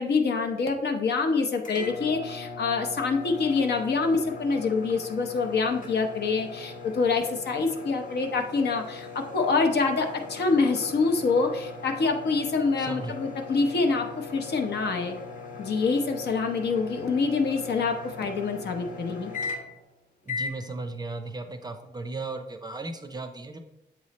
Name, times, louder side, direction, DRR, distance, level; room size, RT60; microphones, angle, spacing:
voice 1, 0.0-15.2 15.6-19.3, left 4 dB, 65° left, 4 dB, 0.8 m, -26 dB
sound 1, 1.6-19.9 20.3-20.6, left 4 dB, 45° left, 1.0 m, -39 dB
voice 2, 12.8-13.2 20.3-23.6, right 3 dB, 20° right, 7 dB, 0.5 m, -36 dB
7.6 x 3.1 x 4.1 m, 0.92 s
wide cardioid pair, 135°, 18 cm